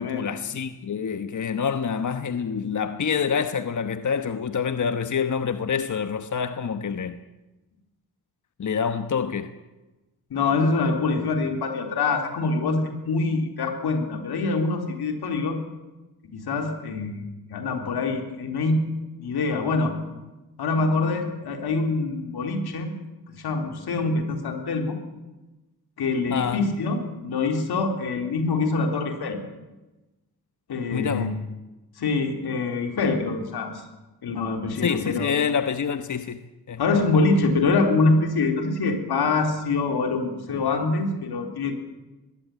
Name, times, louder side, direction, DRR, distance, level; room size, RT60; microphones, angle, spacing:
voice 1, 0.0-7.2 8.6-9.5 26.3-26.6 30.9-31.3 34.8-36.4 36.7-36.8, left 6 dB, 50° left, 1.2 m, -27 dB
voice 2, 10.3-15.6 16.3-17.2 17.5-18.8 19.2-19.9 20.6-22.9 23.4-25.0 26.0-29.4 30.7-31.3 32.0-33.8 34.2-35.3 36.8-41.7, left 3 dB, 85° left, 3.7 m, -25 dB
21.0 x 16.5 x 9.1 m
cardioid pair, 75°, 38 cm